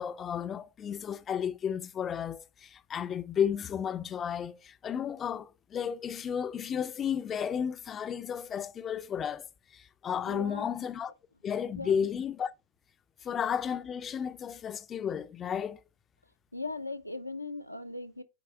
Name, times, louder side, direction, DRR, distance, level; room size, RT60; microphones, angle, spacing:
voice 1, 0.0-9.4 9.7-11.1 11.4-12.5 13.2-15.8, left 8 dB, 25° left, 0.5 m, -33 dB
voice 2, 10.3-10.7 11.8-12.0 16.5-18.2, left 3 dB, 85° left, 0.7 m, -38 dB
8.8 x 4.7 x 4.5 m
figure-of-eight pair, 90°, 0 cm